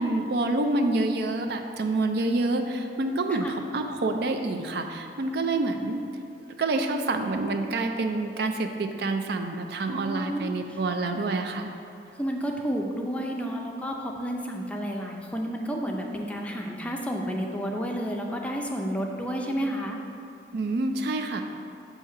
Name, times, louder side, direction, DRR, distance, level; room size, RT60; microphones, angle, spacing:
voice 1, 0.0-6.0 6.6-11.7 20.5-21.4, right 2 dB, 65° right, 5 dB, 0.4 m, -27 dB
voice 2, 9.9-10.8 12.2-20.0, equal, 10° left, 0 dB, 0.4 m, -31 dB
7.0 x 2.8 x 5.7 m, 2.5 s
head